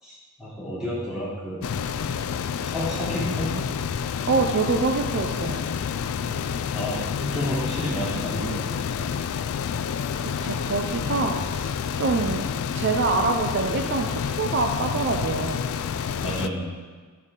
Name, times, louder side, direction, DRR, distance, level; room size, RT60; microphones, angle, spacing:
voice 1, 0.0-1.6 2.6-3.6 6.7-9.2 11.0-11.2 16.2-16.7, equal, 5° right, -10 dB, 2.9 m, -31 dB
sound 1, 1.6-16.5, left 7 dB, 70° left, 0.3 m, -29 dB
voice 2, 4.3-5.6 10.1-11.7 12.0-12.5 12.7-15.7, right 3 dB, 50° right, 4 dB, 0.5 m, -25 dB
11.0 x 6.4 x 3.7 m, 1.5 s
head